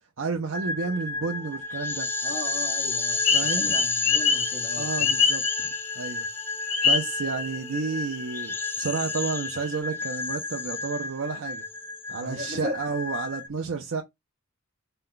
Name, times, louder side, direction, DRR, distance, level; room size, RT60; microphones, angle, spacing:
voice 1, 0.2-2.1 3.3-3.8 4.7-5.7 5.9-6.3 6.8-11.6 12.1-14.0, right 4 dB, 65° right, 0.6 m, -31 dB
sound 1, 0.5-13.5, left 3 dB, 10° left, 0.3 m, -31 dB
voice 2, 2.2-5.2 12.1-12.8, equal, 45° right, 1.1 m, -37 dB
sound 2, 3.2-6.1 6.7-7.8 8.1-8.2 8.6-9.7, left 6 dB, 90° left, 1.3 m, -25 dB
4.2 x 2.2 x 3.8 m
head